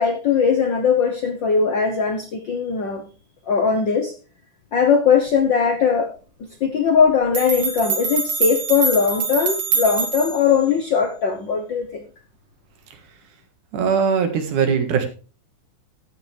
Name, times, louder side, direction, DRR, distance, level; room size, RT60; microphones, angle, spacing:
voice 1, 0.0-3.0 3.5-4.1 4.7-6.1 6.6-12.0, left 6 dB, 70° left, 5 dB, 1.1 m, -19 dB
sound 1, 7.0-7.1 7.3-10.5, right 5 dB, 40° right, 2.2 m, -24 dB
voice 2, 13.7-15.1, right 6 dB, 80° right, 6 dB, 3.2 m, -20 dB
13.0 x 9.1 x 3.4 m, 0.35 s
omnidirectional pair, 3.5 m